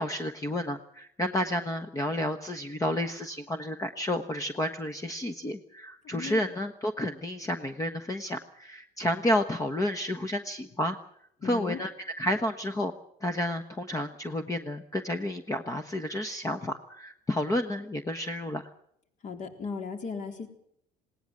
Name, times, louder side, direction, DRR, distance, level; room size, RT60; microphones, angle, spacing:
voice 1, 0.0-11.0 11.4-11.9 12.2-12.9 13.2-18.7, left 1 dB, 20° left, 8 dB, 1.2 m, -31 dB
voice 2, 6.1-6.5 11.4-11.8 19.2-20.5, left 5 dB, 45° left, 6 dB, 3.8 m, -36 dB
19.5 x 18.0 x 7.8 m, 0.71 s
cardioid pair, 110°, 18 cm